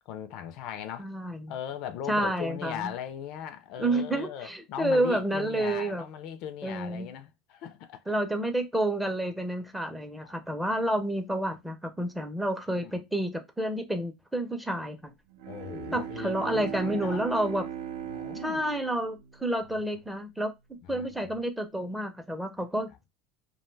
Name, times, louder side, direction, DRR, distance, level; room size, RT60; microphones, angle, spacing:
voice 1, 0.1-1.1 1.5-8.2 10.2-10.4 12.7-13.0 15.5-17.2 18.1-18.6 19.8-19.9 20.8-21.3, left 9 dB, 60° left, 0.4 m, -39 dB
voice 2, 1.0-1.5 2.1-2.9 3.8-6.1 6.6-7.1 8.1-15.1 15.9-17.6 18.4-22.9, right 1 dB, 5° right, 0.5 m, -29 dB
Bowed string instrument, 15.3-20.1, right 9 dB, 85° right, 0.5 m, -39 dB
2.4 x 2.2 x 3.2 m
cardioid pair, 140°, 0 cm